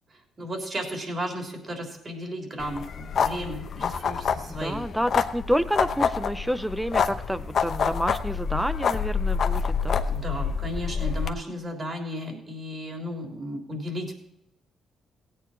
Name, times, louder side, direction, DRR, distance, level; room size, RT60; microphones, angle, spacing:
voice 1, 0.1-4.8 10.1-14.1, equal, 35° right, 2 dB, 3.5 m, -34 dB
sound 1, 2.6-11.3, left 6 dB, 55° left, 0.9 m, -27 dB
voice 2, 4.5-10.0, equal, ahead, 15 dB, 0.6 m, -29 dB
16.5 x 9.2 x 4.4 m, 0.80 s
cardioid pair, 90°, 0 cm